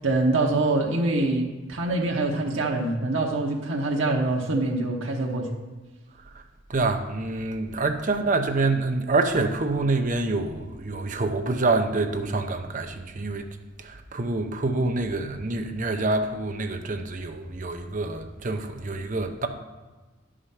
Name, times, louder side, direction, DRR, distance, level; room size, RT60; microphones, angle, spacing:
voice 1, 0.0-5.5, right 2 dB, 85° right, 1.0 m, -25 dB
voice 2, 6.7-13.5 13.8-19.5, right 3 dB, 40° right, 0.7 m, -26 dB
10.0 x 5.0 x 5.6 m
head